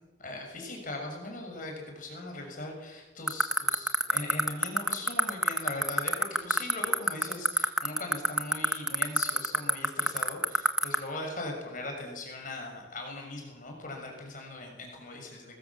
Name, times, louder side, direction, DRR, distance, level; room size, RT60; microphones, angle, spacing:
voice 1, 0.2-15.6, left 2 dB, 40° left, 1 dB, 6.5 m, -39 dB
sound 1, 3.3-10.9, right 1 dB, 5° right, 1.5 m, -22 dB
28.0 x 20.0 x 7.4 m, 1.1 s
head